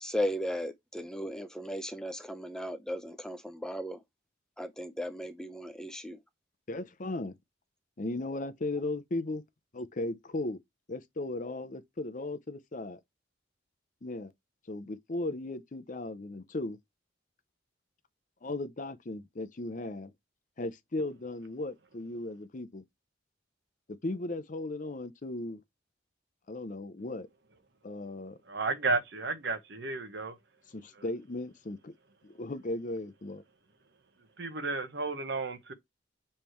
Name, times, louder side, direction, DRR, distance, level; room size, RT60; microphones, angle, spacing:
voice 1, 0.0-4.0 4.6-6.2, equal, 5° left, 0.5 m, -36 dB
voice 2, 6.7-7.3 8.0-9.4 9.7-10.6 10.9-13.0 14.0-14.3 14.7-16.8 18.4-20.1 20.6-22.8 24.0-25.6 26.5-27.3 27.8-28.4 30.7-31.9 32.2-33.4, left 2 dB, 40° left, 0.6 m, -36 dB
voice 3, 28.5-30.4 34.4-35.7, right 3 dB, 60° right, 1.1 m, -32 dB
7.1 x 3.3 x 4.4 m
head